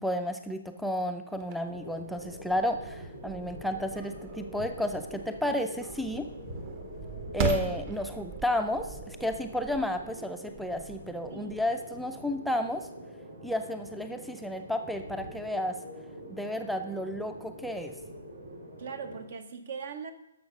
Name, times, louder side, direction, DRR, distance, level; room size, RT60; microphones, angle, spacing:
voice 1, 0.0-6.3 7.3-12.9 13.4-15.8 16.3-18.0, left 1 dB, ahead, 4 dB, 0.5 m, -32 dB
sound 1, 1.3-12.3, right 6 dB, 35° right, 1.3 m, -40 dB
sound 2, 1.7-19.3, equal, 75° right, 3.7 m, -45 dB
voice 2, 18.8-20.1, right 6 dB, 55° right, 9 dB, 1.2 m, -40 dB
12.0 x 6.5 x 5.2 m, 0.86 s
figure-of-eight pair, 130°, 0 cm